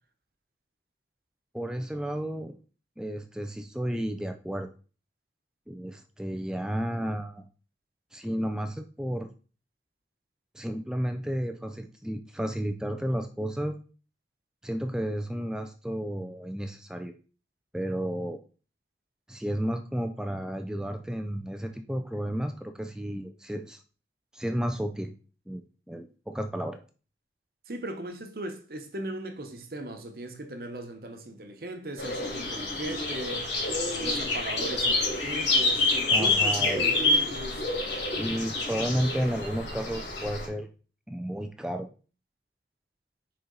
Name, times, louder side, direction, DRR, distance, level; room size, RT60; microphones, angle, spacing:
voice 1, 1.5-2.5 3.0-4.7 5.7-7.4 8.1-9.3 10.5-13.8 14.6-17.1 17.7-18.4 19.3-23.8 24.3-25.1 25.5-26.8 36.1-36.9 38.2-40.7 41.1-41.9, equal, 5° right, 0.4 m, -32 dB
voice 2, 27.7-33.5 33.9-37.6, right 1 dB, 55° right, 1.0 m, -38 dB
sound 1, 32.0-40.5, left 2 dB, 80° left, 2.9 m, -27 dB
6.5 x 4.2 x 3.9 m
head